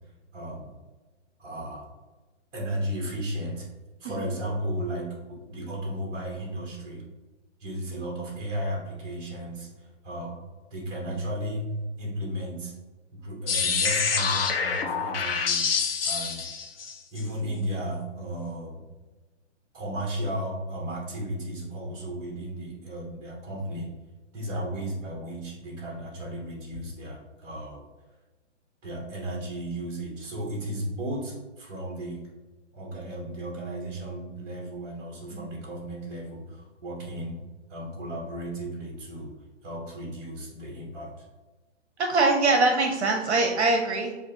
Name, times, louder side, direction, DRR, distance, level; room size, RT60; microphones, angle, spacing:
voice 1, 0.3-0.7 1.4-1.9 2.5-3.7 4.0-7.0 7.6-10.4 10.7-11.7 12.0-12.8 13.1-18.8 19.7-23.9 24.3-27.8 28.8-32.2 32.7-37.4 37.7-39.3 39.6-41.2, right 1 dB, 15° right, -3 dB, 1.1 m, -34 dB
sound 1, 13.5-17.2, left 6 dB, 50° left, 0.6 m, -26 dB
voice 2, 42.0-44.2, right 3 dB, 65° right, 3 dB, 0.7 m, -22 dB
7.2 x 2.5 x 2.7 m, 1.2 s
hypercardioid pair, 160°, 36 cm